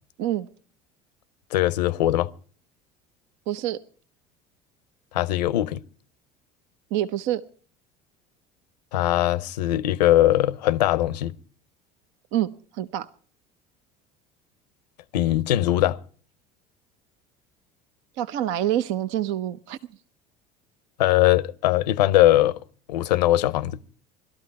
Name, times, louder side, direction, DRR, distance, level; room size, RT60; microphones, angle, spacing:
voice 1, 1.5-2.3 5.1-5.8 8.9-11.3 15.1-16.0 21.0-22.6 22.9-23.8, left 14 dB, 90° left, 0.6 m, -21 dB
voice 2, 3.5-3.8 6.9-7.4 12.3-12.5 12.7-13.1 18.2-19.8, right 12 dB, 70° right, 0.8 m, -26 dB
19.0 x 13.0 x 4.7 m
hypercardioid pair, 80°, 21 cm